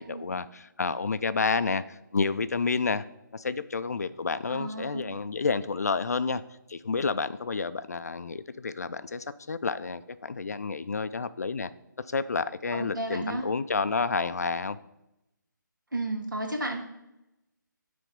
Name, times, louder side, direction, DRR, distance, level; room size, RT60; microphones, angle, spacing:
voice 1, 0.0-3.0 3.3-6.4 6.7-11.7 12.1-14.8, left 4 dB, 50° left, 13 dB, 0.4 m, -30 dB
voice 2, 4.5-5.2 12.7-13.4 15.9-16.8, right 2 dB, 70° right, 2 dB, 1.9 m, -33 dB
9.8 x 3.4 x 5.2 m, 0.89 s
figure-of-eight pair, 150°, 11 cm